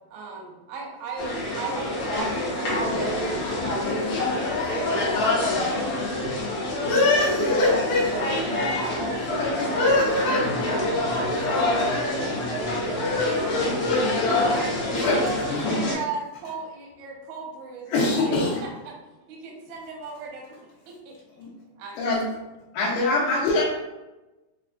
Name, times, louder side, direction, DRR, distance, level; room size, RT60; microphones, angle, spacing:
voice 1, 0.1-2.8 14.3-18.4 18.6-18.9 19.3-21.1 21.7-22.1, right 4 dB, 90° right, -1 dB, 2.7 m, -36 dB
sound 1, 1.2-15.9, left 2 dB, 65° left, 1.8 m, -27 dB
voice 2, 2.7-13.7, right 1 dB, 65° right, -10 dB, 0.8 m, -34 dB
voice 3, 6.8-9.0 9.4-10.8 12.8-14.3 14.8-15.8 17.9-18.7 21.4-21.5 22.0-22.2 22.7-23.6, left 2 dB, 80° left, -6 dB, 2.5 m, -24 dB
6.4 x 2.3 x 2.5 m, 1.1 s
omnidirectional pair, 4.1 m